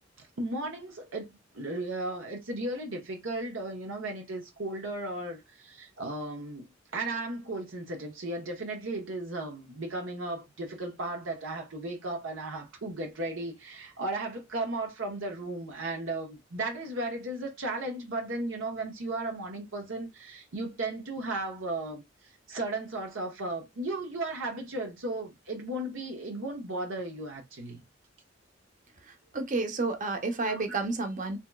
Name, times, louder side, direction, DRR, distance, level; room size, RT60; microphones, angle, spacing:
voice 1, 0.2-6.7 6.9-22.0 22.5-27.8 30.5-30.8, right 2 dB, 80° right, 0.9 m, -35 dB
voice 2, 29.1-31.4, right 3 dB, 40° right, 0.8 m, -31 dB
3.5 x 2.9 x 2.2 m
head